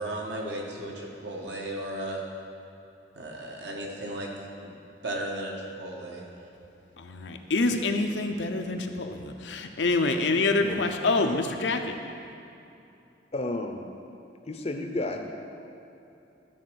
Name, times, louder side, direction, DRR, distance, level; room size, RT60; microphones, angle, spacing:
voice 1, 0.0-2.2 3.1-4.3 4.6-4.7 5.0-6.3 11.0-11.1, right 1 dB, 70° right, -1 dB, 1.4 m, -35 dB
voice 2, 7.0-11.9, left 3 dB, 75° left, 5 dB, 0.7 m, -26 dB
voice 3, 13.3-13.8 14.5-15.3, left 2 dB, 35° left, 5 dB, 0.6 m, -31 dB
12.5 x 4.2 x 6.3 m, 2.8 s
head